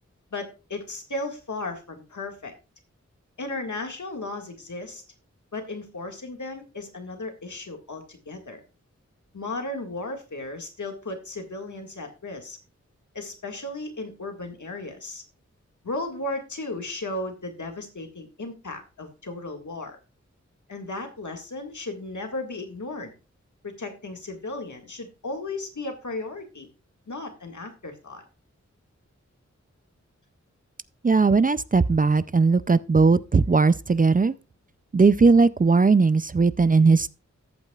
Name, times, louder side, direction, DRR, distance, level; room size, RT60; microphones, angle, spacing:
voice 1, 0.3-2.5 3.4-5.0 5.5-8.6 9.3-12.6 13.1-15.2 15.8-20.0 20.7-23.1 23.6-26.7 27.1-28.2, left 2 dB, 85° left, 1.9 m, -35 dB
voice 2, 31.0-34.3 34.9-37.1, right 4 dB, 30° right, 0.4 m, -18 dB
14.0 x 8.2 x 2.4 m
wide cardioid pair, 65°, 29 cm